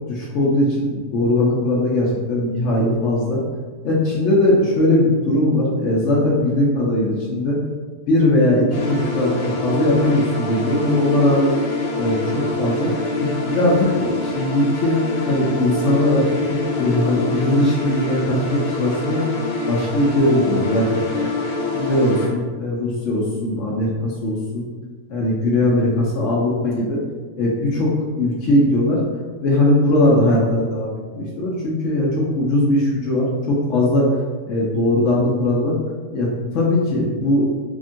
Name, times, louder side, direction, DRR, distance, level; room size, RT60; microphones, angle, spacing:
voice 1, 0.1-3.4 3.8-7.6 8.1-11.5 12.0-12.9 13.2-15.0 15.3-19.2 19.7-21.3 21.7-24.7 25.1-27.0 27.4-29.0 29.4-34.1 34.5-35.7 36.1-36.3 36.5-37.5, left 1 dB, 65° left, -4 dB, 0.8 m, -19 dB
sound 1, 8.7-22.3, left 2 dB, 85° left, 1.2 m, -25 dB
3.5 x 2.2 x 2.5 m, 1.4 s
omnidirectional pair, 1.7 m